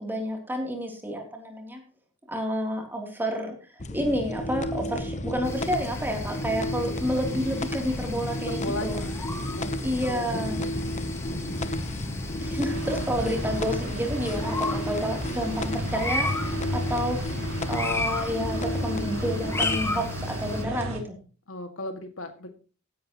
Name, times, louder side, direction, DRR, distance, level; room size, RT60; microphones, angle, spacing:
voice 1, 0.0-1.8 2.3-9.1 9.8-10.6 12.4-21.2, equal, 10° right, 2 dB, 3.1 m, -30 dB
sound 1, 3.8-19.8, left 1 dB, 35° left, 0.9 m, -32 dB
sound 2, 5.4-20.6, left 3 dB, 15° left, 1.5 m, -36 dB
voice 2, 8.4-8.9 9.4-10.7 21.5-22.5, left 1 dB, 75° left, 6 dB, 2.0 m, -37 dB
sound 3, 12.7-21.0, equal, 75° right, 2.6 m, -33 dB
15.5 x 11.0 x 3.0 m, 0.36 s
head